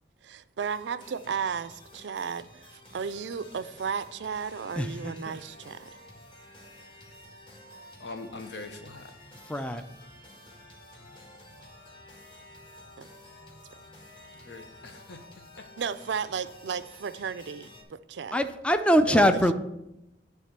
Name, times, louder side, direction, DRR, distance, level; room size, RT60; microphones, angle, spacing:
voice 1, 0.2-5.9 13.0-13.1 15.8-18.4 19.1-19.3, right 6 dB, 75° right, 14 dB, 0.4 m, -34 dB
sound 1, 0.6-17.8, left 1 dB, 30° left, 1.7 m, -51 dB
voice 2, 4.8-5.1 9.5-9.8 18.3-19.5, equal, 5° left, 9 dB, 0.4 m, -23 dB
voice 3, 8.0-9.1 14.4-15.2 15.6-15.7, left 3 dB, 70° left, 6 dB, 0.9 m, -42 dB
9.7 x 3.6 x 6.6 m, 0.90 s
head